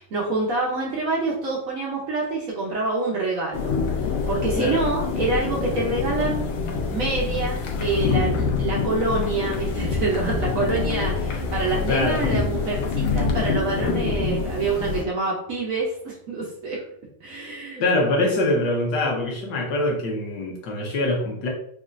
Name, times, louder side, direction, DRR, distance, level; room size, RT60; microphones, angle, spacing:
voice 1, 0.0-3.7 4.3-6.4 6.9-16.8 17.2-17.8, right 3 dB, 85° right, -3 dB, 0.7 m, -26 dB
sound 1, 3.5-15.0, left 5 dB, 80° left, 1.5 m, -25 dB
voice 2, 11.9-12.2 17.8-21.5, left 2 dB, 65° left, 0 dB, 1.2 m, -24 dB
5.2 x 2.3 x 2.5 m, 0.69 s
omnidirectional pair, 2.4 m